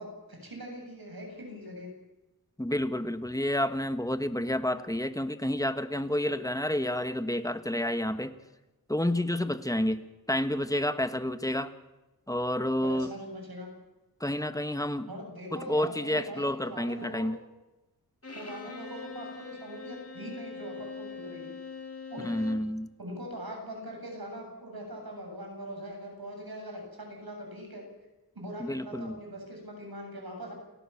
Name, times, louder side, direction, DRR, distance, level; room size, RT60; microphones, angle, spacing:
voice 1, 0.0-1.9 12.8-13.7 15.1-17.3 18.3-21.5 22.1-22.4 23.0-27.8 28.3-30.5, equal, 85° right, 2 dB, 7.9 m, -41 dB
voice 2, 2.6-8.3 8.9-11.7 12.3-13.1 14.2-15.1 15.5-17.4 22.2-22.9 28.6-29.2, left 1 dB, 10° left, 10 dB, 1.4 m, -30 dB
Bowed string instrument, 18.2-22.7, left 5 dB, 40° left, 3.5 m, -42 dB
29.0 x 16.5 x 7.2 m, 1.1 s
wide cardioid pair, 75°, 36 cm